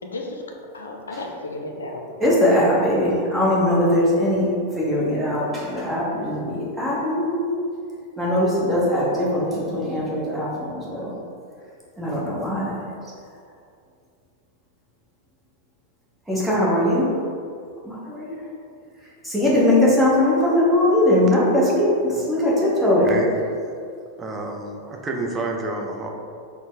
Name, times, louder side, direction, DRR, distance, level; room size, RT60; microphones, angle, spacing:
voice 1, 0.0-2.2, left 2 dB, 70° left, 2 dB, 0.4 m, -34 dB
voice 2, 2.2-7.5 8.2-11.1 12.0-13.0 16.3-17.1 17.8-18.5 19.0-23.1, left 1 dB, 5° right, -7 dB, 1.0 m, -21 dB
voice 3, 24.2-26.1, right 2 dB, 20° right, 1 dB, 0.5 m, -29 dB
3.9 x 2.1 x 3.9 m, 2.4 s
figure-of-eight pair, 90°, 0 cm